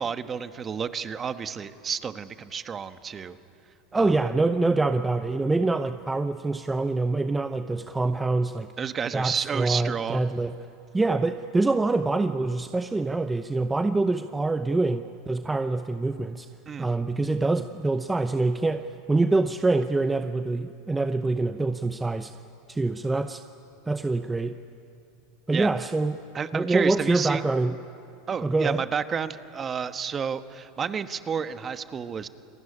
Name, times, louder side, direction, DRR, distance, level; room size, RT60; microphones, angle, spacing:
voice 1, 0.0-3.4 3.9-4.2 8.8-10.2 16.7-16.9 25.5-25.7 26.3-27.4 28.3-32.3, right 6 dB, 30° right, 10 dB, 1.3 m, -31 dB
voice 2, 3.9-8.7 9.1-10.6 10.9-16.5 16.8-22.3 22.7-23.4 23.9-24.6 25.5-26.2 26.5-27.8 28.4-28.8, right 3 dB, 10° right, 9 dB, 0.7 m, -25 dB
27.5 x 20.0 x 10.0 m, 2.7 s
hypercardioid pair, 110°, 0 cm